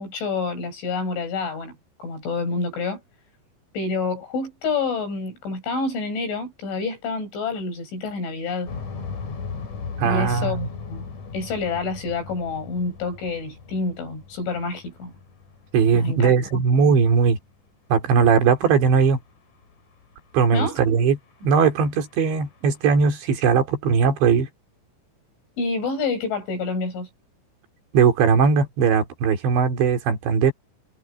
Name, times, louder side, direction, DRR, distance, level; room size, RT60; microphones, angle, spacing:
voice 1, 0.0-3.0 3.7-8.7 10.0-11.1 11.3-15.1 16.0-16.6 20.5-20.8 25.6-27.1, left 4 dB, 85° left, 10.5 m, -28 dB
sound 1, 8.7-16.4 16.7-16.8 17.4-17.5 19.0-19.1 19.3-19.4 19.6-19.7 20.0-20.1 20.5-20.8 21.3-22.9, left 5 dB, 45° left, 4.2 m, -38 dB
voice 2, 10.0-10.7 15.7-17.4 17.9-19.2 20.3-24.5 27.9-30.5, right 6 dB, 70° right, 5.3 m, -19 dB
omnidirectional pair, 5.3 m